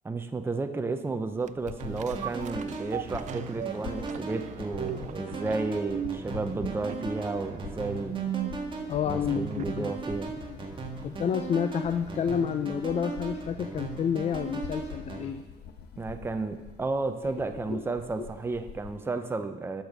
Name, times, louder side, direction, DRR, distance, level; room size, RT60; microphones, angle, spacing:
voice 1, 0.0-8.2 9.1-10.3 16.0-19.8, right 3 dB, 15° right, 7 dB, 0.7 m, -32 dB
sound 1, 1.4-10.0 10.5-10.6, right 12 dB, 45° right, 0.4 m, -38 dB
sound 2, 1.6-19.1, left 8 dB, 75° left, 1.1 m, -46 dB
sound 3, 1.8-15.3, right 3 dB, 30° right, 1.8 m, -38 dB
voice 2, 8.9-9.9 10.5-10.6 11.0-15.4 17.2-17.3 17.7-17.8 18.2-18.3, left 8 dB, 40° left, 8 dB, 0.5 m, -29 dB
12.0 x 6.8 x 6.1 m, 1.2 s
cardioid pair, 110°, 17 cm